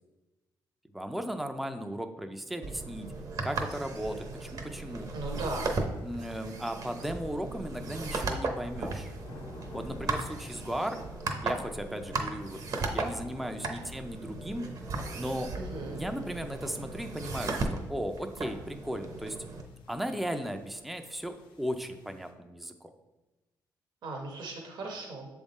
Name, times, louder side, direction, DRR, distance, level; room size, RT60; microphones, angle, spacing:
voice 1, 0.9-3.1 3.4-5.1 6.0-9.1 9.7-11.0 11.4-12.6 12.9-14.7 15.1-15.5 15.9-19.4 19.9-22.9, equal, ahead, 6 dB, 0.4 m, -36 dB
sound 1, 2.6-19.6, right 3 dB, 50° right, 0.8 m, -36 dB
sound 2, 3.9-22.3, left 3 dB, 90° left, 0.8 m, -53 dB
voice 2, 5.1-5.8 15.6-16.0 24.0-25.3, right 2 dB, 70° right, 0 dB, 1.0 m, -37 dB
7.0 x 3.6 x 4.1 m, 1.1 s
cardioid pair, 110°, 8 cm